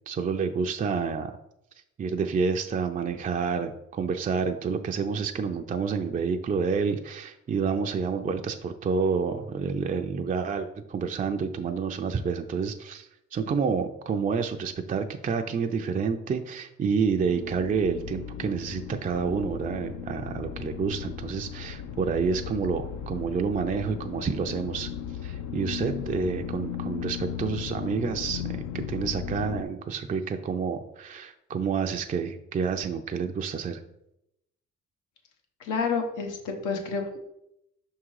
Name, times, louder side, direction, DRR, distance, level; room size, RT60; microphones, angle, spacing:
voice 1, 0.1-1.4 2.0-24.9 25.2-33.8, right 5 dB, 30° right, 5 dB, 0.4 m, -29 dB
sound 1, 17.2-29.6, left 9 dB, 70° left, 0.6 m, -36 dB
voice 2, 35.6-37.2, left 5 dB, 90° left, 3 dB, 1.1 m, -29 dB
5.6 x 3.7 x 4.7 m, 0.83 s
cardioid pair, 90°, 30 cm